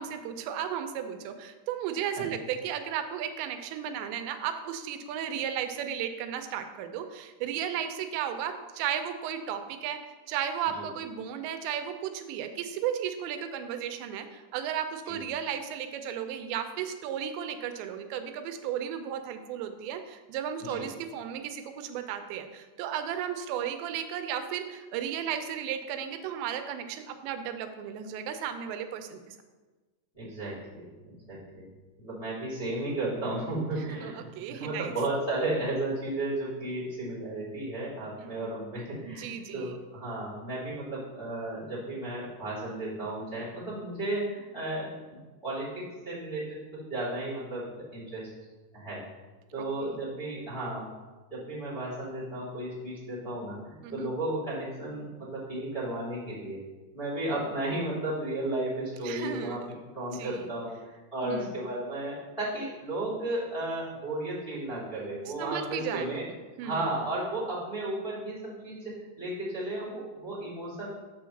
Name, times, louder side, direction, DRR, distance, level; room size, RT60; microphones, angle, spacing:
voice 1, 0.0-29.4 33.9-34.9 38.2-38.4 39.0-39.7 49.6-49.9 53.8-54.1 59.0-59.6 60.1-60.5 61.2-61.5 65.3-66.1 66.6-66.8, right 9 dB, 90° right, 8 dB, 2.9 m, -34 dB
voice 2, 30.1-31.7 32.0-45.2 45.4-48.3 48.7-49.0 49.5-50.9 51.3-56.6 56.9-66.2 66.6-70.9, right 2 dB, 15° left, -11 dB, 1.5 m, -34 dB
5.7 x 4.7 x 6.4 m, 1.3 s
omnidirectional pair, 5.0 m